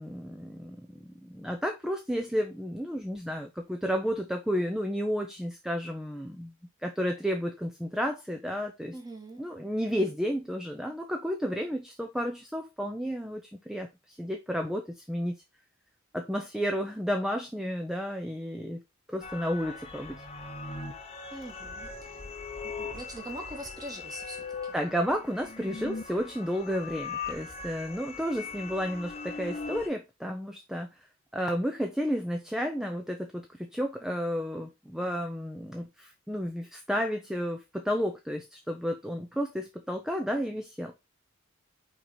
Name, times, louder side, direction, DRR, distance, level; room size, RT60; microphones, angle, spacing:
voice 1, 0.0-6.5 6.8-8.9 9.4-15.4 16.1-18.8 19.1-20.2 24.7-30.9 31.3-40.9, equal, ahead, 0.6 m, -32 dB
voice 2, 8.9-9.4 21.3-22.2 22.6-24.7, right 1 dB, 20° right, 1.9 m, -43 dB
sound 1, 19.2-29.9, left 4 dB, 30° left, 1.0 m, -40 dB
5.3 x 4.5 x 4.3 m
head